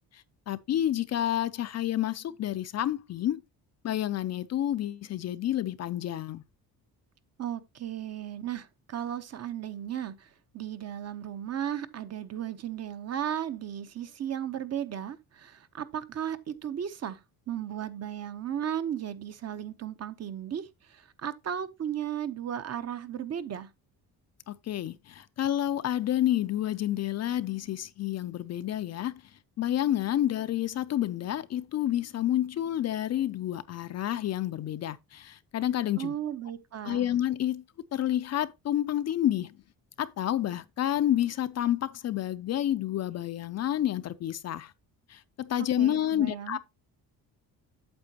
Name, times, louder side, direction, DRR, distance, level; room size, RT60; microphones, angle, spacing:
voice 1, 0.1-3.4 3.8-6.4 24.5-29.2 29.6-36.2 36.8-37.6 37.9-39.6 40.0-44.7 45.1-46.6, left 12 dB, 45° left, 0.5 m, -29 dB
voice 2, 7.4-10.3 10.5-17.2 17.5-23.7 36.0-37.1 45.6-46.6, right 9 dB, 40° right, 0.8 m, -35 dB
8.7 x 7.4 x 2.8 m
cardioid pair, 130°, 37 cm